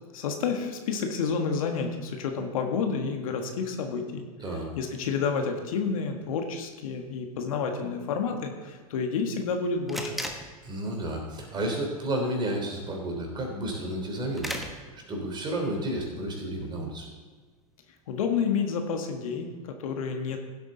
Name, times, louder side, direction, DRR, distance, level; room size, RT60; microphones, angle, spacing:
voice 1, 0.1-4.2 4.8-10.1 18.1-20.4, left 5 dB, 65° left, 4 dB, 1.5 m, -29 dB
sound 1, 4.7-19.0, equal, ahead, 1.2 m, -44 dB
voice 2, 10.6-17.1, right 1 dB, 25° right, 1 dB, 3.3 m, -32 dB
16.0 x 7.9 x 3.9 m, 1.5 s
hypercardioid pair, 95°, 19 cm